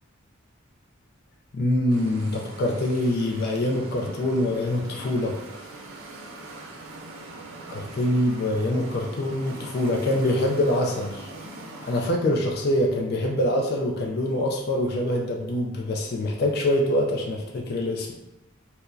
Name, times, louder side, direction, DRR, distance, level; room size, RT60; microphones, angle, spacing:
voice 1, 1.5-5.4 7.7-11.3 11.8-18.1, left 1 dB, 50° left, 0 dB, 0.3 m, -25 dB
sound 1, 1.9-12.1, right 2 dB, 85° right, 0.5 m, -42 dB
4.3 x 2.1 x 2.5 m, 0.96 s
head